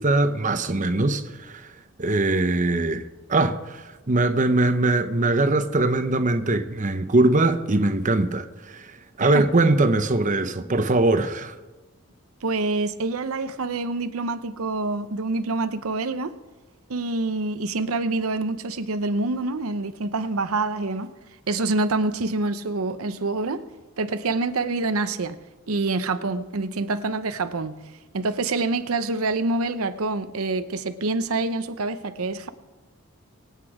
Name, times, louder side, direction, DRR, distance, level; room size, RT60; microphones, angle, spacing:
voice 1, 0.0-1.7 2.0-3.0 3.3-8.9 9.2-11.5, right 2 dB, 35° right, 0.8 m, -22 dB
voice 2, 12.4-16.3 16.9-21.1 21.5-23.7 24.0-25.4 25.7-27.8 28.1-32.5, right 3 dB, 80° right, 0.7 m, -26 dB
24.0 x 8.3 x 4.9 m
head